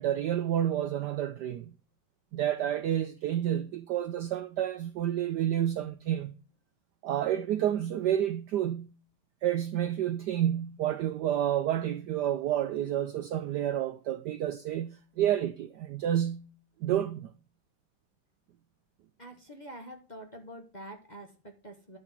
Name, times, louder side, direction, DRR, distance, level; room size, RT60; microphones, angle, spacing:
voice 1, 0.0-1.7 2.3-6.3 7.0-8.9 9.4-16.5 16.8-17.3, right 11 dB, 75° right, 1.0 m, -29 dB
voice 2, 19.2-22.0, right 1 dB, 25° left, 1.0 m, -46 dB
10.5 x 4.3 x 7.2 m
omnidirectional pair, 2.3 m